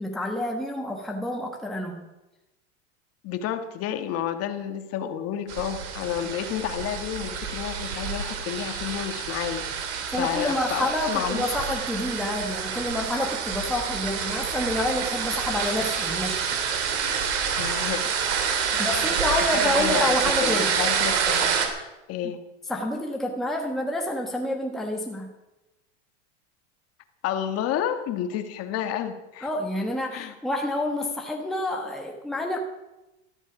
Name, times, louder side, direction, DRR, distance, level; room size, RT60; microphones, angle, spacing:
voice 1, 0.0-2.1 10.1-16.4 18.8-20.7 22.7-25.3 29.4-32.6, left 1 dB, ahead, 1 dB, 1.3 m, -28 dB
voice 2, 3.2-9.7 10.2-11.4 17.6-18.1 18.7-21.5 22.1-22.4 27.2-29.5 30.1-30.3, left 10 dB, 40° left, 8 dB, 1.7 m, -30 dB
sound 1, 5.5-21.7, right 7 dB, 65° right, 3.0 m, -27 dB
13.5 x 13.5 x 6.1 m, 1.0 s
supercardioid pair, 135°, 35 cm